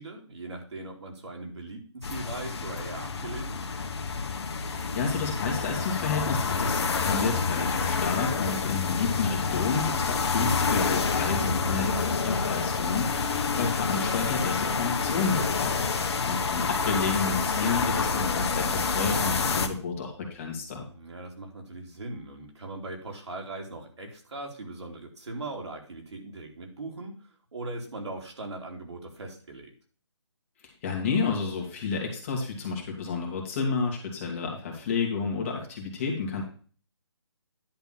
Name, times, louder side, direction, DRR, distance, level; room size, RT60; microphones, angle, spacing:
voice 1, 0.0-3.6 8.5-8.7 20.9-29.7, right 2 dB, 70° right, 1 dB, 2.9 m, -40 dB
sound 1, 2.0-19.7, left 5 dB, 60° left, 1.1 m, -28 dB
voice 2, 4.5-20.8 30.6-36.4, left 5 dB, 25° left, 0 dB, 2.0 m, -30 dB
10.5 x 3.6 x 7.3 m, 0.42 s
hypercardioid pair, 160°, 15 cm